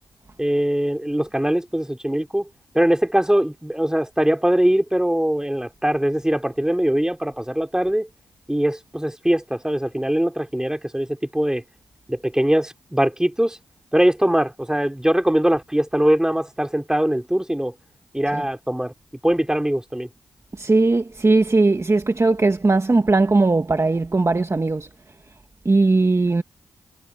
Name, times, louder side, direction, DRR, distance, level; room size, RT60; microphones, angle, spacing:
voice 1, 0.4-2.5 2.7-8.1 8.5-11.6 12.1-13.6 13.9-17.7 18.1-18.9 19.2-20.1, right 1 dB, 5° right, 4.9 m, -21 dB
voice 2, 20.6-24.9 25.6-26.4, right 3 dB, 30° right, 1.7 m, -18 dB
supercardioid pair, 45°, 9 cm